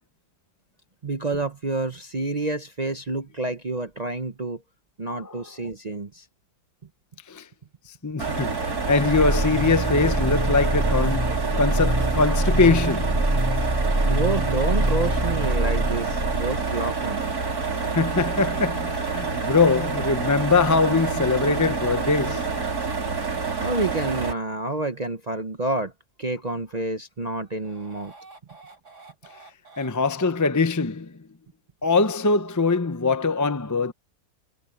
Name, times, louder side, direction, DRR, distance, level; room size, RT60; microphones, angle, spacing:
voice 1, 1.0-4.6 5.0-6.2 14.0-17.2 23.6-25.9 26.2-28.1, right 2 dB, 35° right, 0.7 m, -28 dB
voice 2, 8.0-13.3 17.8-22.6 29.8-31.1 31.8-33.9, left 4 dB, 25° left, 0.4 m, -22 dB
sound 1, 8.2-24.3, right 4 dB, 65° right, 4.0 m, -28 dB
sound 2, 8.8-16.6, right 1 dB, 15° right, 3.0 m, -25 dB
sound 3, 16.2-22.7 27.4-29.9, right 3 dB, 85° right, 6.1 m, -48 dB
omnidirectional pair, 1.7 m